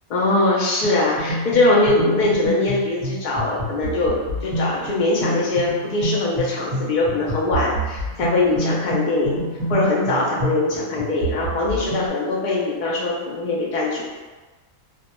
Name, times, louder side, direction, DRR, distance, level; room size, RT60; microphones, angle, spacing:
voice 1, 0.1-9.4 9.7-14.0, left 2 dB, 65° left, -4 dB, 0.4 m, -21 dB
sound 1, 0.8-12.1, right 1 dB, 30° right, 0.9 m, -28 dB
2.3 x 2.1 x 2.8 m, 1.3 s
omnidirectional pair, 1.4 m